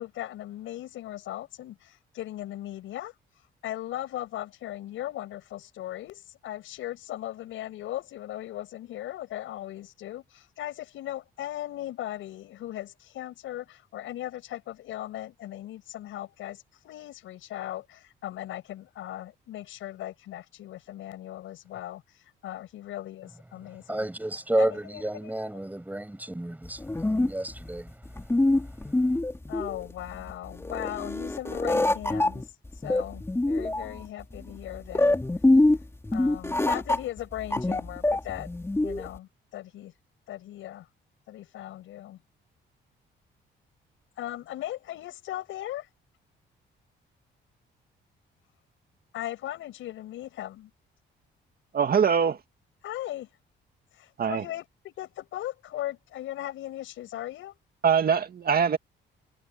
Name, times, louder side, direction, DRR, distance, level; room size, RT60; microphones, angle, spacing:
voice 1, 0.0-3.1 3.6-24.0 24.6-25.5 29.5-32.4 32.8-35.2 36.1-38.5 38.8-39.9 40.3-40.9 41.3-42.2 44.2-45.9 49.1-50.7 52.8-53.3 53.9-57.6, left 13 dB, 85° left, 6.2 m, -38 dB
voice 2, 23.9-27.9, right 1 dB, 10° right, 6.2 m, -31 dB
sound 1, 26.6-39.2, left 2 dB, 15° left, 2.8 m, -25 dB
voice 3, 51.7-52.4 54.2-54.4 57.8-58.8, right 7 dB, 50° right, 2.2 m, -23 dB
cardioid pair, 90°, 20 cm